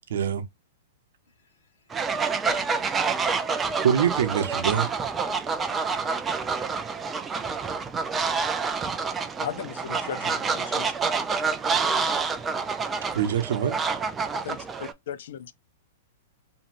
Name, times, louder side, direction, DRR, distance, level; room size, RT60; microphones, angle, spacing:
voice 1, 0.1-0.4 3.8-4.9 13.1-13.7, right 8 dB, 70° right, 0.7 m, -24 dB
voice 2, 1.3-2.1, left 4 dB, 85° left, 1.1 m, -68 dB
Fowl, 1.9-14.9, right 5 dB, 10° right, 0.3 m, -28 dB
voice 3, 9.4-10.9 14.3-15.5, left 9 dB, 60° left, 0.4 m, -37 dB
3.0 x 2.7 x 2.5 m
hypercardioid pair, 165°, 0 cm